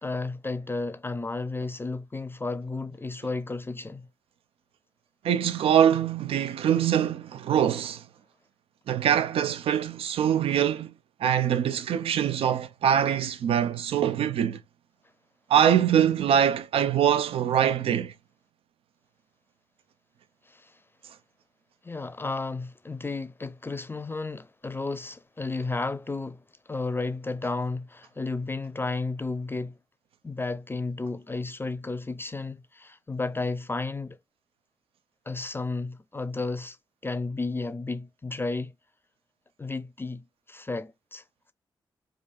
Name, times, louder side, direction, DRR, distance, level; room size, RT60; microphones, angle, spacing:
voice 1, 0.0-4.1 20.5-20.7 21.8-26.4 26.7-29.7 30.2-34.2 35.3-36.8 37.0-38.7 39.6-41.2, left 3 dB, 25° left, 0.5 m, -33 dB
voice 2, 5.2-8.0 8.9-10.9 11.2-14.6 15.5-18.1, right 9 dB, 90° right, 0.4 m, -23 dB
4.8 x 2.4 x 2.4 m
cardioid pair, 80°, 9 cm